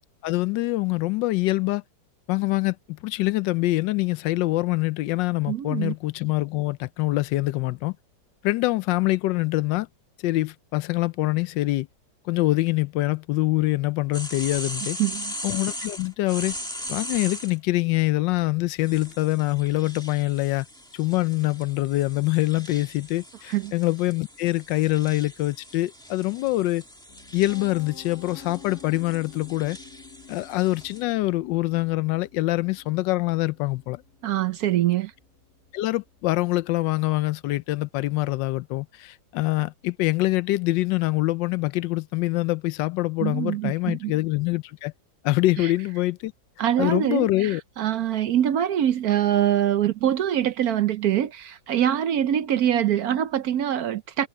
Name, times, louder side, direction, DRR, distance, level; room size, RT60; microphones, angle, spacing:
voice 1, 0.2-1.8 2.3-7.9 8.4-9.9 10.2-11.9 12.2-15.0 15.4-16.6 16.9-20.7 20.9-26.8 27.3-29.8 30.3-34.0 35.7-44.9 45.2-46.3 46.8-47.6, left 18 dB, 80° left, 1.2 m, -25 dB
voice 2, 5.5-5.9 15.0-15.3 23.5-23.7 34.2-35.1 43.2-44.1 45.6-45.7 46.6-54.3, right 11 dB, 65° right, 1.0 m, -24 dB
sound 1, 14.1-17.6 18.8-31.0, equal, ahead, 1.5 m, -39 dB
Piano, 27.1-39.0, left 6 dB, 60° left, 2.9 m, -50 dB
omnidirectional pair, 2.0 m